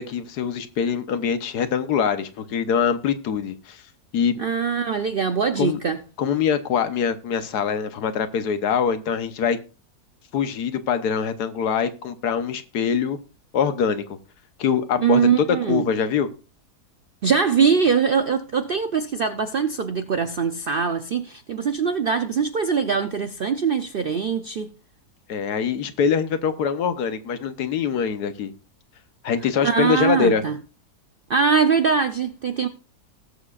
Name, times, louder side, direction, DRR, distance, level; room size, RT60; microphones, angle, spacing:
voice 1, 0.0-3.8 4.1-4.4 5.6-5.8 6.2-9.6 10.3-13.2 13.5-14.0 14.6-16.3 25.3-28.5 29.2-30.4, left 7 dB, 85° left, 1.5 m, -23 dB
voice 2, 4.4-6.0 15.0-15.9 17.2-24.7 29.6-30.6 31.3-32.7, right 6 dB, 70° right, 0.5 m, -22 dB
19.5 x 7.2 x 2.4 m
omnidirectional pair, 1.7 m